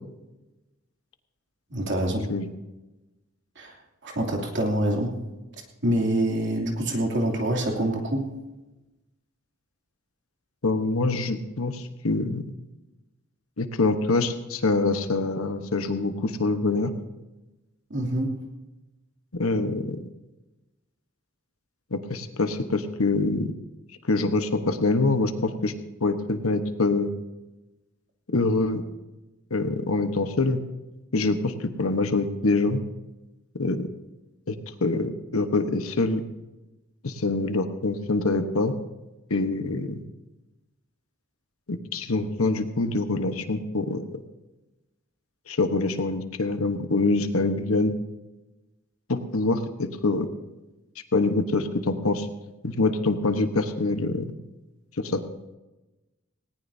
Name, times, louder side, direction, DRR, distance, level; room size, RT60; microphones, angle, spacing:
voice 1, 1.7-2.3 3.6-3.8 4.0-5.3 5.8-8.3 17.9-18.4, right 1 dB, 60° right, 0 dB, 2.9 m, -26 dB
voice 2, 10.6-12.4 13.6-16.9 19.4-20.0 21.9-23.5 24.0-25.7 26.0-27.1 28.3-28.8 29.5-30.6 31.1-32.8 33.6-33.8 34.5-34.6 34.8-36.2 37.0-38.7 39.3-40.0 41.7-44.2 45.5-47.9 49.1-50.3 51.1-52.3 52.6-54.3 55.0-55.2, left 3 dB, 90° left, 8 dB, 1.2 m, -25 dB
19.0 x 18.0 x 2.8 m, 1.1 s
head